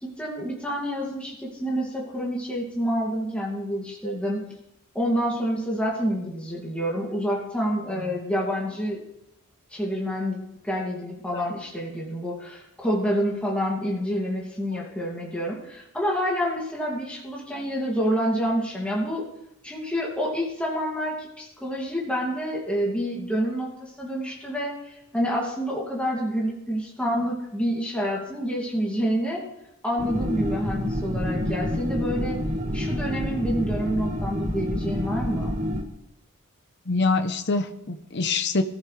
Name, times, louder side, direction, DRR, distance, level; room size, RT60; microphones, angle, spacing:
voice 1, 0.0-4.4 4.9-9.0 9.7-10.4 10.6-19.2 19.6-29.4 29.8-32.4 32.7-35.6, equal, 5° left, -4 dB, 2.4 m, -28 dB
sound 1, 30.0-35.8, equal, 35° right, 1.7 m, -28 dB
voice 2, 36.9-38.6, left 3 dB, 50° left, 8 dB, 0.9 m, -25 dB
20.0 x 14.0 x 3.4 m, 0.82 s
head